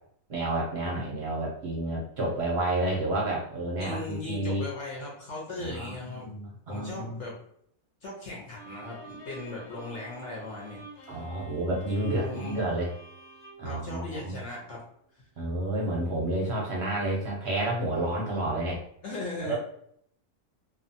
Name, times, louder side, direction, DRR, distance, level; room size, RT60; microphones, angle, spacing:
voice 1, 0.3-4.6 5.6-7.2 11.1-12.9 13.6-14.4 15.4-18.8 19.4-19.6, right 1 dB, 55° right, -3 dB, 0.8 m, -30 dB
voice 2, 3.8-6.3 6.7-7.3 8.0-11.2 12.2-12.6 13.6-14.8 19.0-19.6, left 2 dB, 55° left, -4 dB, 1.0 m, -38 dB
Bowed string instrument, 8.5-14.8, right 2 dB, 75° left, 1.2 m, -49 dB
2.6 x 2.4 x 2.6 m, 0.68 s
omnidirectional pair, 1.6 m